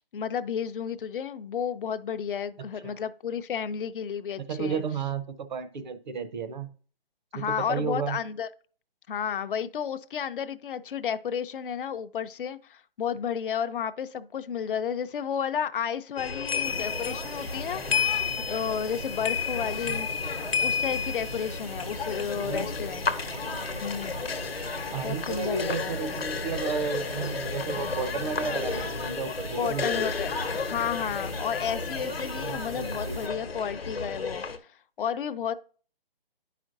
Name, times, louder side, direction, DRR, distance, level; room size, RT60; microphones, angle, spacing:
voice 1, 0.0-4.8 7.3-8.5 9.1-18.2 18.5-20.1 20.6-23.1 23.8-24.2 25.0-25.9 29.6-34.4 35.0-35.5, left 8 dB, 65° left, 0.5 m, -32 dB
voice 2, 4.4-6.7 7.3-8.2 19.6-20.0 22.3-22.7 24.9-30.1 32.4-33.2, right 5 dB, 50° right, 0.6 m, -33 dB
sound 1, 16.2-34.6, left 5 dB, 85° left, 0.9 m, -32 dB
sound 2, 16.6-33.3, right 2 dB, 80° right, 1.2 m, -40 dB
9.8 x 5.0 x 2.6 m
figure-of-eight pair, 155°, 29 cm